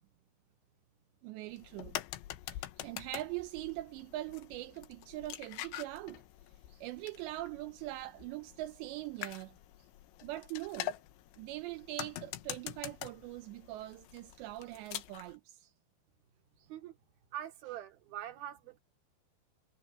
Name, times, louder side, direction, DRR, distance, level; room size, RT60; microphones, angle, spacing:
voice 1, 1.2-2.0 2.5-6.2 6.7-9.9 10.2-10.9 11.4-15.7 16.6-16.7, right 17 dB, 80° right, 2.9 m, -42 dB
sound 1, 1.5-15.4, left 13 dB, 90° left, 3.4 m, -45 dB
voice 2, 17.3-18.8, right 12 dB, 60° right, 3.8 m, -43 dB
omnidirectional pair, 5.3 m